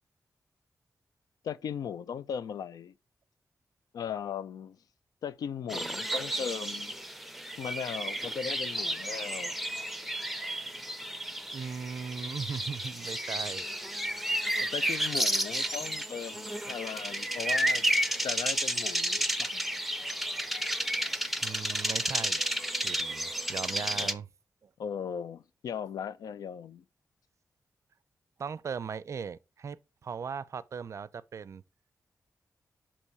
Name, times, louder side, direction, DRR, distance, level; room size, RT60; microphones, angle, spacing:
voice 1, 1.4-2.9 3.9-4.8 5.2-6.9 7.6-9.5 14.6-17.9 18.2-19.7 24.0-24.2 24.8-26.8, left 7 dB, 90° left, 0.4 m, -38 dB
sound 1, 5.7-24.1, right 1 dB, ahead, 0.5 m, -32 dB
voice 2, 11.5-13.7 21.4-22.4 22.8-24.3 24.6-24.7 28.4-29.8 30.0-31.6, right 6 dB, 55° right, 0.4 m, -38 dB
6.3 x 3.0 x 5.4 m
cardioid pair, 85°, 6 cm